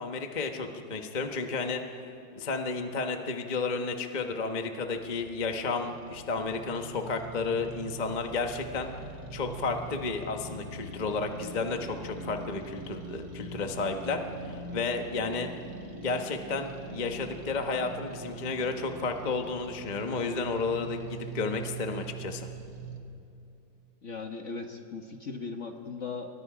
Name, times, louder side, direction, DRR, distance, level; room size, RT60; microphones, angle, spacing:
voice 1, 0.0-1.8 2.4-8.9 9.3-15.5 16.0-22.5, left 4 dB, 25° left, 5 dB, 1.1 m, -32 dB
sound 1, 4.9-23.0, right 3 dB, 70° right, 2.3 m, -43 dB
voice 2, 24.0-26.3, left 4 dB, 45° left, 4 dB, 1.4 m, -38 dB
30.0 x 23.5 x 5.0 m, 2.7 s
omnidirectional pair, 2.1 m